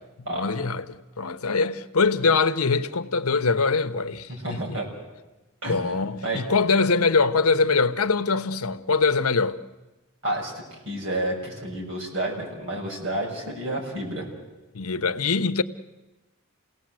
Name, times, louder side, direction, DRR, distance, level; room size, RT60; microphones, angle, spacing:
voice 1, 0.3-4.8 5.7-9.6 14.7-15.6, left 4 dB, 90° left, 1.0 m, -23 dB
voice 2, 4.4-4.9 5.6-5.8 6.2-6.4 10.2-10.5 10.8-14.3, right 1 dB, 60° right, 6.8 m, -30 dB
29.0 x 18.0 x 7.7 m
head